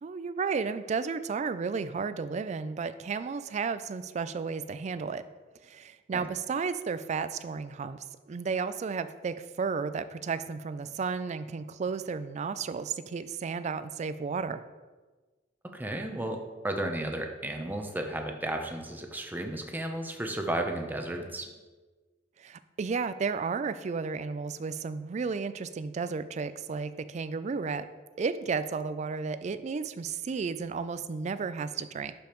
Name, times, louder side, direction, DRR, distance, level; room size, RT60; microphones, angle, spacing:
voice 1, 0.0-5.2 5.6-14.6 22.4-27.9 28.2-32.1, right 5 dB, 40° right, 13 dB, 0.3 m, -33 dB
voice 2, 15.7-21.5, right 1 dB, 10° right, 3 dB, 0.7 m, -33 dB
11.5 x 5.2 x 3.0 m, 1.3 s
head